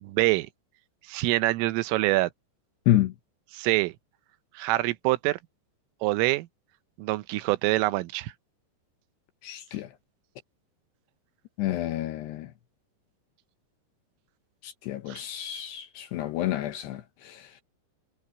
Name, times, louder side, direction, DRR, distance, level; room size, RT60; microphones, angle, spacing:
voice 1, 0.0-0.5 1.1-2.3 3.5-3.9 4.6-5.4 6.0-6.5 7.0-8.3 15.1-15.2, right 20 dB, 90° right, 3.5 m, -25 dB
voice 2, 9.4-9.9 11.6-12.5 14.6-17.5, left 13 dB, 75° left, 2.6 m, -29 dB
omnidirectional pair, 5.7 m